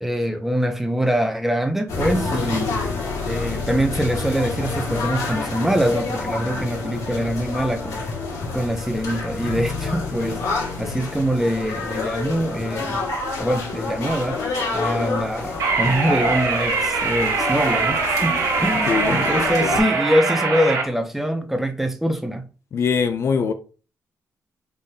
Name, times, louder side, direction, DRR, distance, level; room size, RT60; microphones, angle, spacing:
voice 1, 0.0-2.8 3.3-8.0 8.5-13.0 13.4-14.4 14.7-22.5, equal, 5° right, 0.5 m, -24 dB
sound 1, 1.9-19.8, left 3 dB, 85° left, 1.8 m, -28 dB
sound 2, 15.6-20.8, right 4 dB, 75° right, 1.3 m, -22 dB
voice 2, 18.7-19.3 22.7-23.5, left 6 dB, 50° left, 0.5 m, -22 dB
5.4 x 3.5 x 2.7 m
wide cardioid pair, 160°, 6 cm